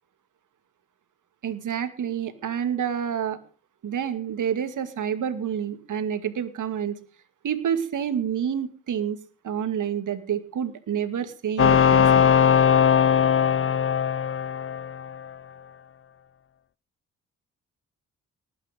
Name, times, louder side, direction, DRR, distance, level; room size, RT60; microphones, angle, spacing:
voice 1, 1.4-3.4 3.8-7.0 7.4-9.2 9.4-12.3, right 8 dB, 70° right, 10 dB, 2.4 m, -28 dB
sound 1, 11.6-15.3, left 8 dB, 40° left, 0.7 m, -19 dB
19.0 x 9.5 x 5.3 m, 0.37 s
cardioid pair, 70°, 32 cm